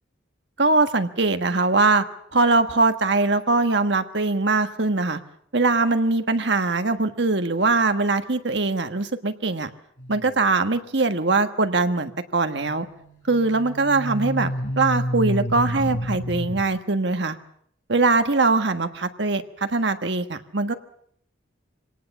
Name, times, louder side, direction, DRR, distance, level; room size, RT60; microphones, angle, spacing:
voice 1, 0.6-2.0 2.3-5.2 5.5-9.7 10.1-12.9 13.3-17.4 17.9-20.7, right 3 dB, 60° right, 8 dB, 1.4 m, -22 dB
sound 1, 10.0-10.4 12.6-16.6, equal, 70° left, 5.2 m, -29 dB
25.0 x 18.5 x 7.2 m, 0.68 s
head